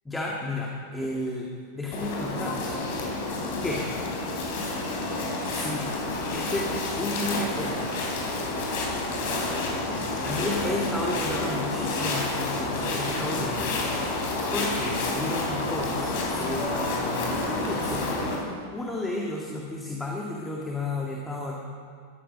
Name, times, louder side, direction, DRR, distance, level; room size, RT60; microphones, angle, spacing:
voice 1, 0.1-2.9 3.6-3.9 5.4-5.9 6.3-7.8 10.0-13.8 14.4-18.3 18.7-21.6, left 1 dB, 10° left, -2 dB, 2.0 m, -33 dB
sound 1, 1.9-18.4, left 2 dB, 50° left, 3.6 m, -29 dB
16.0 x 13.5 x 5.1 m, 2.3 s
figure-of-eight pair, 90°, 0 cm